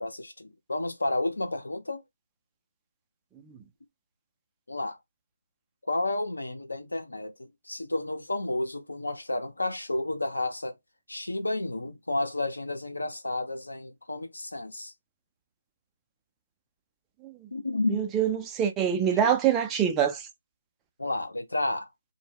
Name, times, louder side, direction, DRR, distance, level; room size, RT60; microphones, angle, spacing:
voice 1, 0.0-2.0 4.7-5.0 5.8-10.8 11.1-14.9 17.5-18.0 19.1-19.2 21.0-21.9, left 2 dB, 80° left, 0.7 m, -31 dB
voice 2, 17.9-20.3, right 8 dB, 15° right, 0.4 m, -25 dB
2.0 x 2.0 x 3.3 m
figure-of-eight pair, 150°, 0 cm